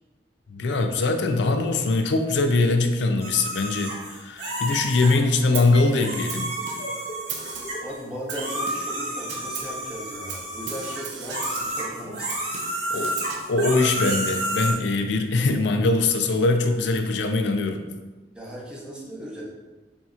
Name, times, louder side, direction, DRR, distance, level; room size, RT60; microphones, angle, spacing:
voice 1, 0.5-6.5 12.9-13.2 13.5-17.8, left 3 dB, 75° left, 6 dB, 0.4 m, -22 dB
sound 1, 3.2-5.2 5.9-8.0 8.3-14.7, right 1 dB, 65° right, 1.2 m, -31 dB
sound 2, 4.6-8.6, equal, 30° left, 0.7 m, -41 dB
Snare drum, 5.5-5.9 6.3-7.0 7.3-7.9 8.3-9.0 9.3-9.8 10.3-11.8 12.3-13.5, right 6 dB, 80° right, 0.6 m, -37 dB
voice 2, 7.8-12.6 12.9-13.2 18.3-19.4, equal, 5° right, -6 dB, 1.0 m, -37 dB
6.9 x 2.8 x 2.4 m, 1.2 s
head